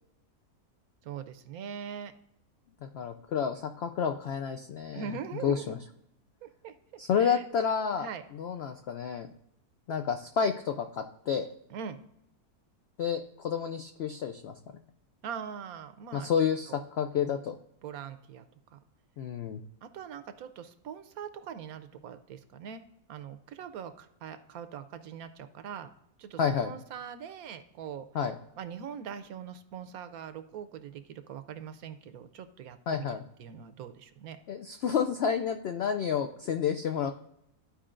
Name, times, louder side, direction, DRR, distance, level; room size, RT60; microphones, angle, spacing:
voice 1, 1.0-2.1 4.9-5.8 6.4-7.4 8.0-8.2 11.7-12.0 15.2-16.3 16.7-16.8 17.8-18.4 18.7-18.8 19.8-22.8 23.1-25.9 26.2-28.1 28.6-34.4, right 7 dB, 75° right, 10 dB, 1.1 m, -42 dB
voice 2, 2.8-5.1 5.4-5.8 7.0-8.1 8.4-9.3 9.9-11.5 13.0-14.5 16.1-17.5 19.2-19.6 26.4-26.7 28.1-28.3 32.9-33.2 34.5-37.1, left 7 dB, 80° left, 7 dB, 0.5 m, -30 dB
13.0 x 4.9 x 2.5 m, 0.79 s
omnidirectional pair, 1.6 m